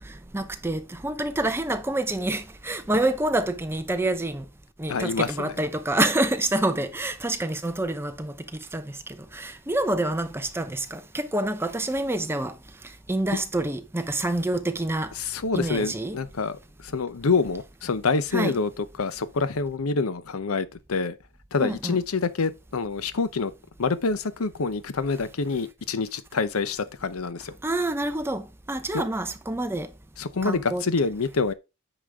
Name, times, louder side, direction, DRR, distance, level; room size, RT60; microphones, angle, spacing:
voice 1, 0.3-4.4 4.8-8.3 8.7-8.8 9.3-12.5 13.1-15.1 15.5-16.2 18.3-18.6 21.6-22.0 27.6-29.9 30.4-30.8, right 1 dB, 10° right, 0.7 m, -27 dB
voice 2, 4.9-5.5 13.3-13.4 15.2-16.6 16.8-21.2 21.5-23.5 23.8-27.5 28.9-29.0 30.2-31.5, left 4 dB, 85° left, 0.7 m, -26 dB
8.8 x 5.1 x 3.5 m
head